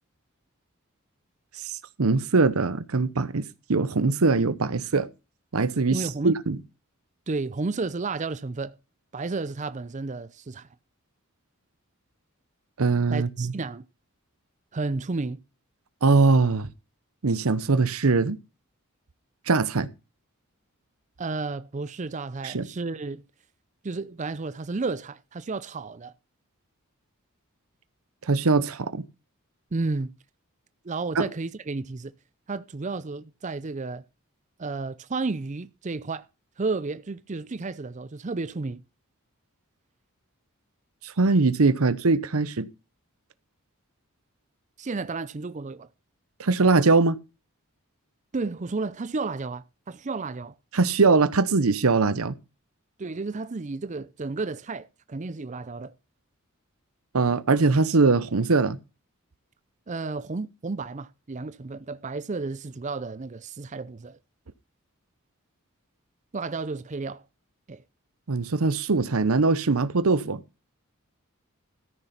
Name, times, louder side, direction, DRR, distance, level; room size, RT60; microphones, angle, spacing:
voice 1, 2.0-5.1 5.5-6.6 12.8-13.5 16.0-16.7 17.2-18.4 19.5-19.9 22.4-22.7 28.3-29.0 31.1-31.3 41.0-42.7 46.4-47.2 50.7-52.3 57.1-58.8 68.3-70.4, right 3 dB, 80° right, 0.8 m, -22 dB
voice 2, 5.9-6.4 7.3-8.8 9.1-10.7 13.1-13.8 14.7-15.4 21.2-23.2 23.8-26.1 29.7-30.1 30.8-32.1 32.5-34.0 34.6-36.3 36.6-38.8 44.8-45.9 48.3-50.6 53.0-55.9 59.9-64.2 66.3-67.2 67.7-67.8, right 3 dB, 35° right, 0.5 m, -32 dB
13.5 x 6.7 x 5.9 m
head